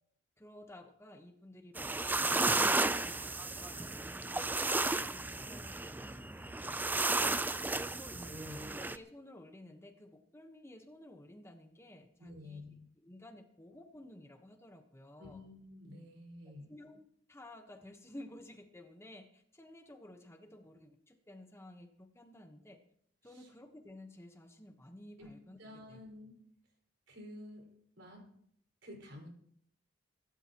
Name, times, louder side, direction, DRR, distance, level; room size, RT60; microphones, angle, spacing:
voice 1, 0.4-4.4 4.7-6.9 7.1-7.8 8.4-8.5 8.8-12.6 13.0-15.4 16.7-17.0 17.3-22.8 23.2-25.6 25.9-26.0, left 1 dB, 15° left, 5 dB, 1.2 m, -54 dB
sound 1, 1.8-9.0, right 2 dB, 10° right, 0.4 m, -33 dB
voice 2, 8.0-8.7 12.2-12.8 15.2-16.7 23.2-23.5 25.2-25.3 25.6-26.3 27.1-27.6 28.0-28.2 28.8-29.3, left 1 dB, 75° right, 1 dB, 5.1 m, -50 dB
24.0 x 12.5 x 3.0 m, 0.66 s
head